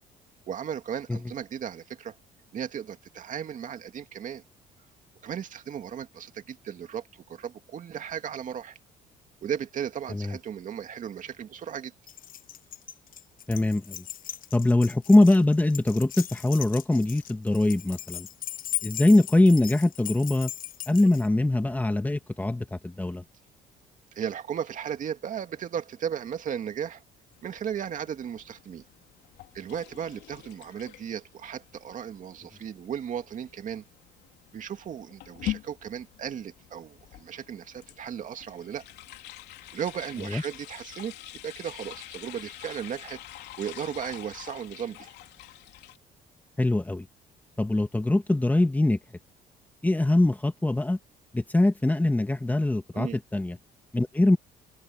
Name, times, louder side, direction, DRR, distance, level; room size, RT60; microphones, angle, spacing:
voice 1, 0.5-2.1 2.5-4.4 5.2-8.8 9.4-11.9 24.1-27.0 27.4-28.8 29.5-33.8 34.5-38.9 39.7-41.1 41.4-43.2 43.6-45.1 52.9-53.2, right 8 dB, 50° right, 2.3 m, -35 dB
Keys jangling, 12.1-21.3, left 12 dB, 55° left, 1.3 m, -38 dB
voice 2, 13.5-14.0 14.5-18.3 18.8-20.5 20.9-23.2 40.3-40.4 46.6-47.0 47.6-49.0 49.8-51.0 51.3-53.6 53.9-54.4, left 2 dB, 10° left, 2.0 m, -22 dB
sound 1, 27.3-46.0, left 15 dB, 80° left, 3.4 m, -44 dB
open air
cardioid pair, 110°, 17 cm